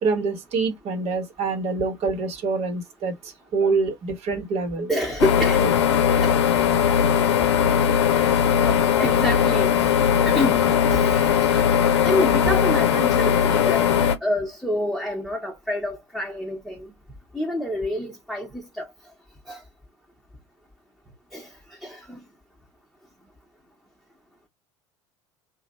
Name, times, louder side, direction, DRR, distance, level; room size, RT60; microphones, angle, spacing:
voice 1, 0.0-4.9, right 4 dB, 45° right, 1.3 m, -26 dB
voice 2, 4.9-5.8 6.2-6.3 8.7-9.8 10.3-10.6 10.9-11.6 12.0-13.9 14.2-16.9 17.3-18.9 19.5-19.6 21.3-21.5 21.8-22.2, left 1 dB, ahead, 1.2 m, -27 dB
sound 1, 5.2-14.2, left 8 dB, 70° left, 0.6 m, -19 dB
3.1 x 2.4 x 4.0 m
figure-of-eight pair, 70°, 15 cm